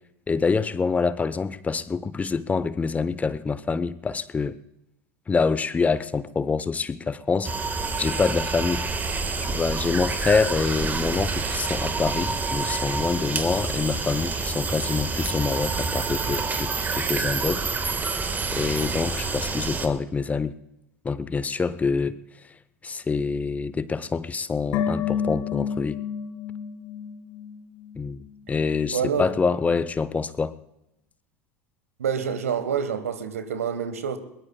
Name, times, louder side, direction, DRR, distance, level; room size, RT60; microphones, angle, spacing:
voice 1, 0.3-4.6 5.3-8.8 9.4-20.6 21.0-22.2 22.8-26.0 28.0-28.2 28.5-30.5, left 4 dB, 20° left, 0.7 m, -26 dB
sound 1, 7.4-19.9, right 4 dB, 20° right, 1.5 m, -28 dB
sound 2, 24.7-28.0 28.3-28.4, left 7 dB, 55° left, 1.2 m, -30 dB
voice 2, 28.9-29.3 32.0-34.2, right 7 dB, 75° right, 1.3 m, -27 dB
22.0 x 21.5 x 2.3 m
figure-of-eight pair, 75°, 8 cm